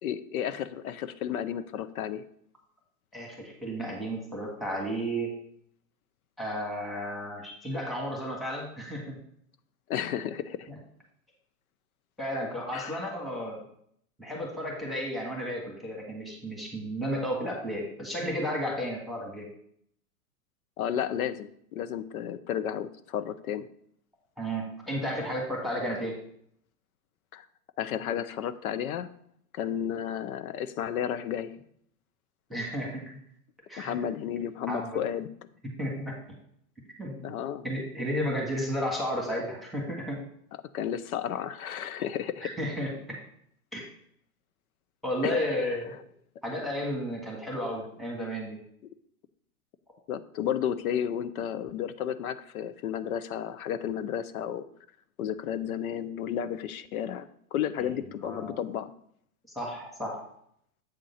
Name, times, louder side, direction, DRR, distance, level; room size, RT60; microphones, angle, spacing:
voice 1, 0.0-2.2 9.9-10.7 12.7-13.0 20.8-23.7 27.3-27.5 27.8-29.1 29.5-31.5 33.8-35.3 37.2-37.7 40.7-42.5 45.2-45.7 50.1-54.6 55.2-58.9, left 9 dB, 65° left, 13 dB, 0.8 m, -32 dB
voice 2, 3.1-5.3 6.4-9.2 12.2-13.6 14.2-19.5 24.4-26.2 32.5-33.2 33.7-34.0 34.7-35.0 35.8-36.2 37.0-37.3 37.6-40.3 42.4-43.2 43.7-43.8 45.0-45.9 46.4-48.6 57.8-57.9 58.2-58.5 59.5-60.3, equal, ahead, -2 dB, 1.6 m, -33 dB
8.0 x 3.7 x 5.6 m, 0.68 s
hypercardioid pair, 120°, 46 cm